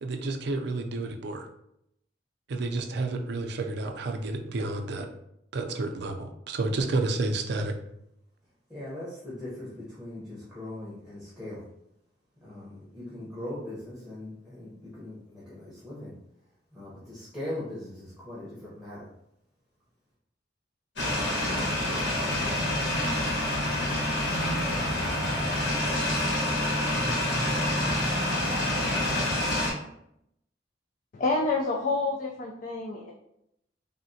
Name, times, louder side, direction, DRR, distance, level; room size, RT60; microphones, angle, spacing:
voice 1, 0.0-1.5 2.5-5.1 5.5-7.7, right 2 dB, 65° right, 5 dB, 0.4 m, -30 dB
voice 2, 8.7-11.7 12.4-16.1 16.7-19.1, left 1 dB, ahead, -9 dB, 0.8 m, -40 dB
sound 1, 21.0-29.7, left 1 dB, 85° left, 1.2 m, -27 dB
voice 3, 31.1-33.1, left 3 dB, 45° left, 0 dB, 0.3 m, -28 dB
3.5 x 2.1 x 2.6 m, 0.78 s
head